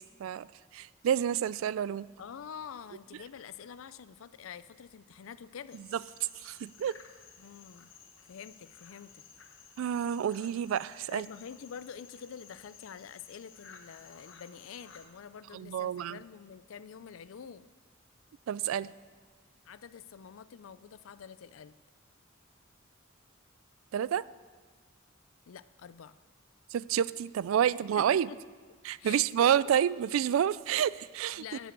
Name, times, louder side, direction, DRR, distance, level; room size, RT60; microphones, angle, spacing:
voice 1, 0.7-2.1 6.4-6.9 9.8-11.3 15.5-16.2 18.5-18.9 23.9-24.2 26.7-28.3 28.8-31.4, right 9 dB, 80° right, 20 dB, 0.3 m, -29 dB
voice 2, 2.2-5.9 7.4-7.9 8.3-9.3 11.1-17.7 19.6-21.7 25.5-26.2 28.0-28.4 28.7-29.5 31.3-31.7, left 7 dB, 80° left, 15 dB, 0.4 m, -47 dB
sound 1, 5.7-15.1, left 6 dB, 65° left, 1.0 m, -55 dB
12.0 x 6.2 x 8.1 m, 1.5 s
head